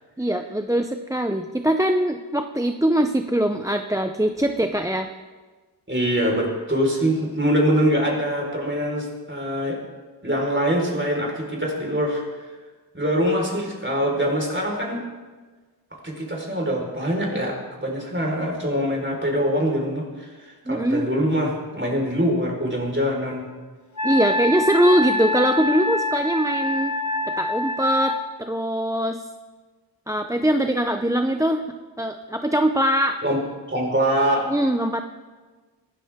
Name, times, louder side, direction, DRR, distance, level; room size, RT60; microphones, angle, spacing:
voice 1, 0.2-5.1 20.7-21.1 24.0-26.9 27.4-29.2 30.1-31.6 32.0-33.2 34.5-35.0, right 1 dB, 10° right, 6 dB, 0.6 m, -22 dB
voice 2, 5.9-9.8 10.2-12.5 12.9-15.0 16.0-23.5 33.2-33.4 33.7-34.5, equal, 25° right, -1 dB, 4.5 m, -24 dB
Wind instrument woodwind instrument, 24.0-28.2, left 1 dB, 45° left, 1.7 m, -25 dB
24.0 x 13.0 x 3.7 m, 1.4 s
wide cardioid pair, 60°, 43 cm